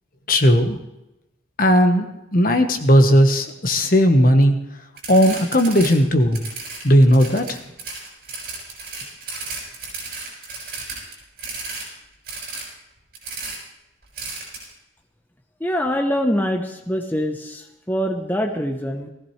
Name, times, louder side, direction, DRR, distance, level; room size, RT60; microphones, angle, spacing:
voice 1, 0.3-0.8 1.6-4.5 5.1-6.4 6.8-7.6, equal, 50° left, 5 dB, 1.4 m, -16 dB
sound 1, 5.0-5.9 6.2-11.9 12.2-12.6 13.1-13.6 14.1-14.6, right 3 dB, 50° right, 6.6 m, -33 dB
voice 2, 15.6-19.1, equal, 10° left, 3 dB, 1.0 m, -24 dB
20.0 x 15.0 x 3.3 m, 0.92 s
head